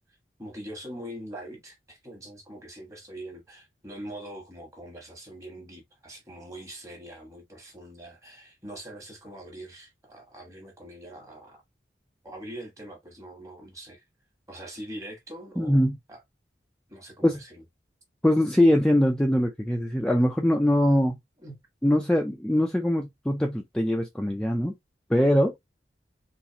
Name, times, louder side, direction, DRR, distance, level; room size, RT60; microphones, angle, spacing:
voice 1, 0.4-11.6 12.2-14.0 14.5-16.2 16.9-17.6 21.4-21.6, right 1 dB, 20° right, 1.2 m, -43 dB
voice 2, 15.6-16.0 17.2-17.4 18.2-21.2 21.8-24.7 25.1-25.5, left 1 dB, 5° left, 0.4 m, -22 dB
3.9 x 2.6 x 2.8 m
head